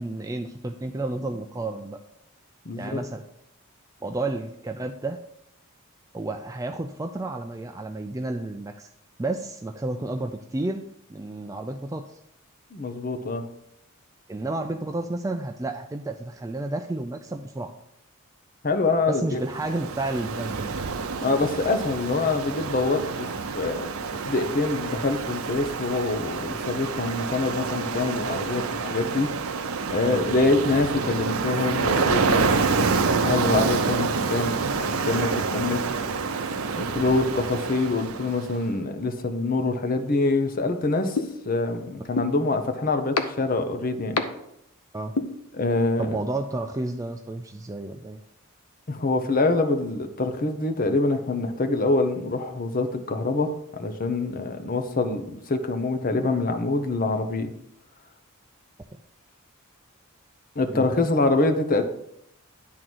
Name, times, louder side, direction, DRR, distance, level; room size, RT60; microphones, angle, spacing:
voice 1, 0.0-2.0 2.8-3.2 4.0-5.2 6.1-8.9 9.2-12.2 14.3-17.7 19.1-20.7 30.0-30.2 44.9-45.2 46.0-48.2 60.7-60.9, right 2 dB, 15° right, 5 dB, 0.4 m, -31 dB
voice 2, 2.7-3.0 12.7-13.5 18.6-19.4 21.2-23.9 24.2-29.3 29.9-35.8 36.7-41.2 41.5-44.2 45.5-46.2 48.9-57.5 60.6-61.8, left 3 dB, 40° left, 7 dB, 0.8 m, -25 dB
Ocean, 19.4-38.5, right 4 dB, 75° right, 0.7 m, -27 dB
sound 1, 41.2-41.3 42.2-42.3 43.2-43.3 44.2-44.3 45.2-45.3, left 4 dB, 85° left, 0.8 m, -22 dB
10.5 x 3.8 x 6.1 m, 0.78 s
head